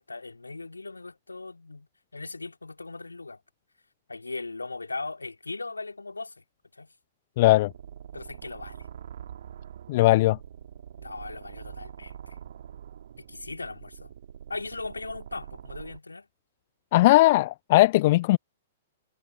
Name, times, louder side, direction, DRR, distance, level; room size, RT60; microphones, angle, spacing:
voice 1, 0.0-3.4 4.1-6.4 6.7-6.9 8.1-8.9 11.0-12.4 13.2-14.1 14.5-16.3, left 3 dB, 75° left, 3.4 m, -38 dB
voice 2, 7.4-7.7 9.9-10.4 16.9-18.4, left 18 dB, 45° left, 0.7 m, -19 dB
sound 1, 7.7-16.0, right 9 dB, 55° right, 2.4 m, -44 dB
figure-of-eight pair, 110°, 0 cm